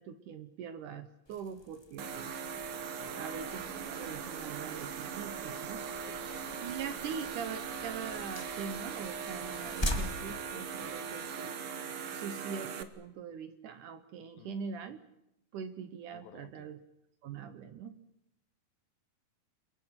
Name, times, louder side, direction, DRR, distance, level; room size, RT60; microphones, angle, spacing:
voice 1, 0.0-2.3 3.1-5.8 6.6-11.6 12.1-15.0 15.5-16.8 17.2-17.9, right 6 dB, 70° right, 10 dB, 2.1 m, -42 dB
sound 1, 1.2-11.4, left 1 dB, 45° left, 0.3 m, -43 dB
sound 2, 2.0-12.8, right 6 dB, 85° right, 1.2 m, -40 dB
voice 2, 6.0-6.4 9.6-9.8 10.8-11.0 14.4-14.6 16.1-16.7, left 10 dB, 75° left, 11 dB, 2.7 m, -55 dB
29.5 x 22.0 x 6.0 m, 0.81 s
omnidirectional pair, 4.5 m